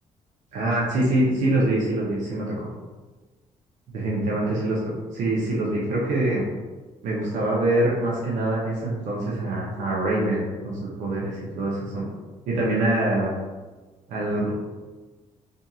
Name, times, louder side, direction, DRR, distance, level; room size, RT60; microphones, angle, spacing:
voice 1, 0.5-2.7 3.9-4.8 5.1-6.4 7.0-12.1 12.5-13.3 14.1-14.5, right 1 dB, 75° right, -5 dB, 0.6 m, -24 dB
2.7 x 2.5 x 2.3 m, 1.3 s
cardioid pair, 85°, 13 cm